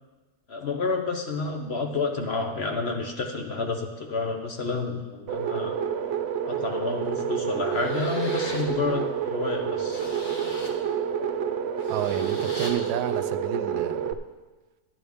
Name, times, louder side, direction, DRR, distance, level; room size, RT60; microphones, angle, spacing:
voice 1, 0.5-5.8 6.5-10.0, left 4 dB, 50° left, 4 dB, 0.9 m, -29 dB
sound 1, 5.3-14.1, right 8 dB, 70° right, 0.6 m, -29 dB
sound 2, 7.0-7.1 7.6-8.7 9.2-9.3 9.7-10.8 11.6-12.7, left 1 dB, 30° left, 1.7 m, -39 dB
voice 2, 11.9-14.2, right 10 dB, 90° right, 11 dB, 1.1 m, -31 dB
11.0 x 11.0 x 3.5 m, 1.2 s
omnidirectional pair, 1.7 m